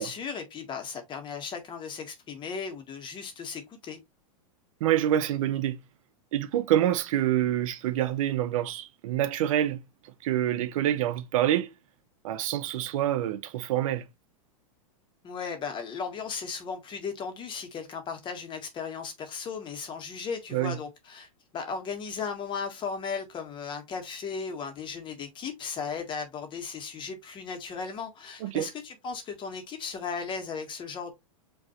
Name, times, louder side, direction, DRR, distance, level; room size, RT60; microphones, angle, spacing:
voice 1, 0.0-4.0 15.2-21.3 21.5-31.1, left 5 dB, 25° left, 1.5 m, -36 dB
voice 2, 4.8-5.8 6.3-9.8 10.0-11.7 12.2-14.0 20.5-20.8 28.4-28.7, right 12 dB, 65° right, 0.7 m, -26 dB
5.3 x 2.9 x 3.0 m
hypercardioid pair, 130°, 18 cm